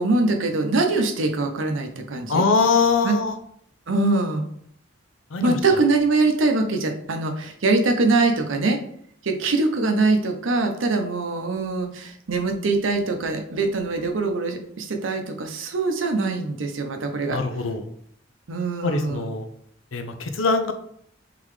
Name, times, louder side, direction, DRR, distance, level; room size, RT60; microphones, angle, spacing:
voice 1, 0.0-2.4 3.0-3.1 3.9-4.5 5.4-8.8 9.2-17.4 18.5-19.3, right 3 dB, 75° right, 4 dB, 0.7 m, -23 dB
voice 2, 2.3-3.4 5.3-5.6 17.3-17.9 18.8-19.5 19.9-20.7, left 4 dB, 85° left, 7 dB, 0.6 m, -22 dB
3.8 x 3.7 x 3.2 m, 0.66 s
head